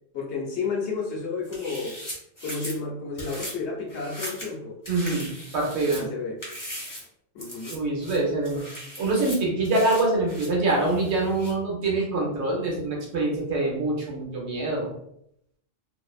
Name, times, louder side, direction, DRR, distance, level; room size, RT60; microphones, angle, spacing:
voice 1, 0.1-2.0 2.4-4.8 5.8-6.4 7.3-7.8, left 4 dB, 70° left, -1 dB, 0.9 m, -31 dB
sound 1, 1.4-2.8 3.2-3.5 3.9-4.5 4.8-6.0 6.4-7.0 7.4-7.7 8.0-11.5, equal, 20° left, 0.7 m, -39 dB
voice 2, 4.9-6.1 7.7-8.6 9.0-14.9, right 2 dB, 65° right, -2 dB, 1.0 m, -25 dB
2.6 x 2.0 x 2.3 m, 0.73 s
omnidirectional pair, 1.3 m